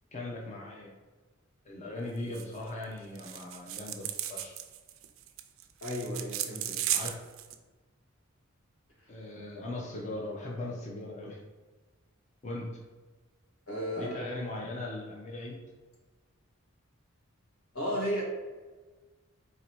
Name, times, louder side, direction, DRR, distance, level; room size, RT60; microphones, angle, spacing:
voice 1, 0.1-0.9 1.6-4.5 6.9-7.2 9.1-11.4 12.4-12.8 14.0-15.6, left 2 dB, 35° left, -2 dB, 0.6 m, -39 dB
sound 1, 2.3-2.6 2.8-2.9 3.1-7.5, right 11 dB, 70° right, 0.4 m, -35 dB
voice 2, 5.8-6.8 13.7-14.2 17.7-18.2, equal, 90° left, -3 dB, 1.3 m, -33 dB
4.0 x 2.7 x 4.5 m, 1.3 s
head